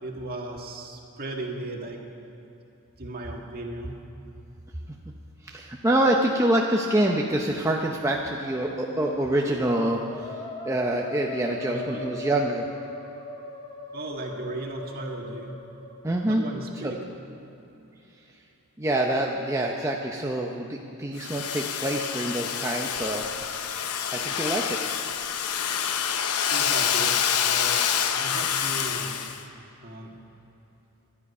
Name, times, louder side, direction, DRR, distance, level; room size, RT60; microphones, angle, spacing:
voice 1, 0.0-2.0 3.0-4.0 11.7-12.1 13.9-15.6 16.2-17.0 26.4-29.2 29.8-30.1, right 2 dB, 45° right, 1 dB, 1.8 m, -36 dB
voice 2, 5.4-10.3 10.6-12.7 16.0-16.4 16.8-16.9 18.8-23.2 24.1-24.8, right 1 dB, 15° right, 0 dB, 0.7 m, -26 dB
Musical instrument, 8.2-16.3, left 2 dB, 20° left, 1.3 m, -40 dB
Domestic sounds home sounds, 21.2-29.4, left 8 dB, 85° left, 0.8 m, -27 dB
18.5 x 12.0 x 5.5 m, 2.9 s
head